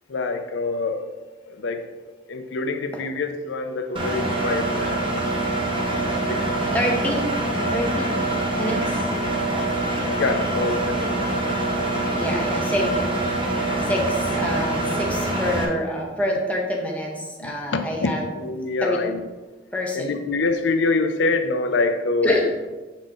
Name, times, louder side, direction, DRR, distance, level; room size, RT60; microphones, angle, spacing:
voice 1, 0.1-1.0 1.5-1.9 2.3-5.2 6.0-6.7 10.2-11.3 17.4-19.2 19.9-22.4, left 3 dB, 85° left, 7 dB, 0.5 m, -26 dB
Engine, 4.0-15.7, right 2 dB, 30° right, 1.1 m, -24 dB
voice 2, 6.7-7.3 7.7-8.2 8.6-8.9 12.1-13.2 13.8-18.3 18.8-19.0 19.7-20.1 22.2-22.5, equal, 10° left, -1 dB, 0.9 m, -26 dB
7.2 x 4.0 x 3.8 m, 1.2 s
head